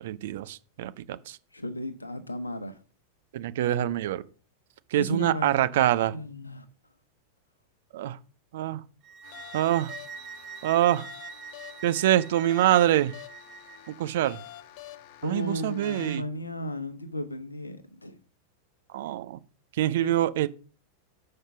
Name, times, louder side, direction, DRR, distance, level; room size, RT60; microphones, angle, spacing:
voice 1, 0.0-1.4 3.3-4.2 4.9-6.1 7.9-8.2 8.5-8.8 9.5-9.9 10.6-11.1 11.8-13.1 13.9-14.4 15.2-16.2 18.9-19.4 19.8-20.5, right 13 dB, 55° right, 0.6 m, -25 dB
voice 2, 1.5-2.8 4.9-5.6 6.1-6.6 15.2-18.2 20.0-20.1, left 1 dB, 80° left, 1.0 m, -34 dB
sound 1, 9.0-13.9, right 7 dB, 35° right, 1.0 m, -44 dB
sound 2, 9.2-16.2, left 12 dB, 45° left, 0.7 m, -47 dB
5.6 x 5.5 x 5.9 m
figure-of-eight pair, 90°, 0 cm